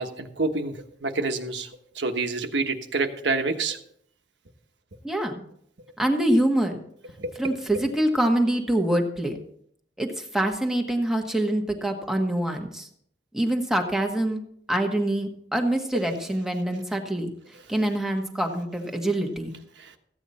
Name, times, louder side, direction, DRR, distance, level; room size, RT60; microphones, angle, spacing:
voice 1, 0.0-1.7 1.9-3.8 7.2-7.5 19.8-19.9, right 3 dB, 90° right, 5 dB, 1.3 m, -28 dB
voice 2, 5.0-5.4 6.0-6.8 7.4-9.4 10.0-12.9 13.3-14.4 14.7-17.3 17.7-19.5, right 1 dB, 5° right, 3 dB, 1.3 m, -25 dB
15.0 x 9.0 x 4.2 m, 0.68 s
head